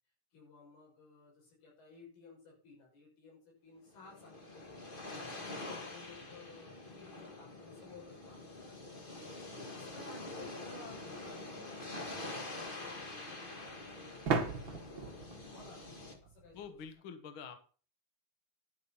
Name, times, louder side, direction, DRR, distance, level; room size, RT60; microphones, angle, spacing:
voice 1, 0.3-4.9 5.4-8.8 9.6-17.0, left 4 dB, 75° left, -1 dB, 7.9 m, -57 dB
sound 1, 3.9-16.1, left 2 dB, 30° left, 1.0 m, -46 dB
voice 2, 5.2-5.5 16.5-17.6, left 6 dB, 50° left, 8 dB, 1.5 m, -48 dB
sound 2, 11.3-11.4 14.3-16.9, right 5 dB, 45° right, 1.7 m, -37 dB
11.0 x 8.5 x 5.8 m, 0.39 s
omnidirectional pair, 4.4 m